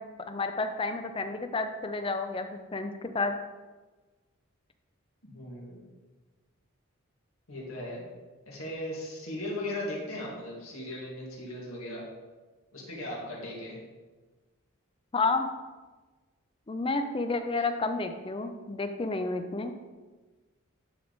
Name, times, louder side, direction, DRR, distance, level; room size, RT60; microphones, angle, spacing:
voice 1, 0.0-3.3 15.1-15.5 16.7-19.7, left 3 dB, 25° left, 7 dB, 0.4 m, -31 dB
voice 2, 5.2-5.8 7.5-8.1 8.5-12.1 12.7-13.8, left 1 dB, 75° left, -4 dB, 2.1 m, -37 dB
9.8 x 3.5 x 4.0 m, 1.3 s
head